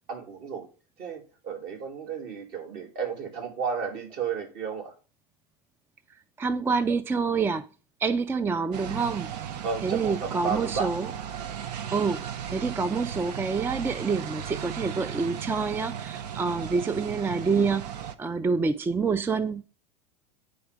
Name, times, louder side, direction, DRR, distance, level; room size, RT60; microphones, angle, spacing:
voice 1, 0.1-0.7 1.0-4.9 9.6-10.9, right 6 dB, 50° right, 2.8 m, -33 dB
voice 2, 6.4-7.7 8.0-9.3 9.8-11.1 11.9-19.6, right 4 dB, 10° right, 0.3 m, -27 dB
sound 1, 8.7-18.1, right 8 dB, 75° right, 0.8 m, -36 dB
9.2 x 4.7 x 5.0 m
supercardioid pair, 115°, 21 cm